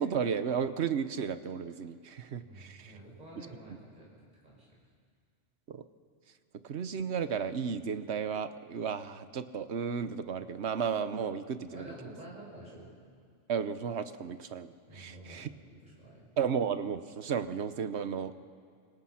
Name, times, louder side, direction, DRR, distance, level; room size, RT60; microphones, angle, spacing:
voice 1, 0.0-2.9 5.7-5.8 6.6-11.9 13.5-15.5 16.4-18.4, right 7 dB, 60° right, 11 dB, 1.2 m, -33 dB
voice 2, 2.4-4.7 11.7-12.9 14.9-16.3, right 1 dB, 35° right, -4 dB, 6.9 m, -49 dB
28.5 x 26.0 x 5.8 m, 2.2 s
omnidirectional pair, 1.3 m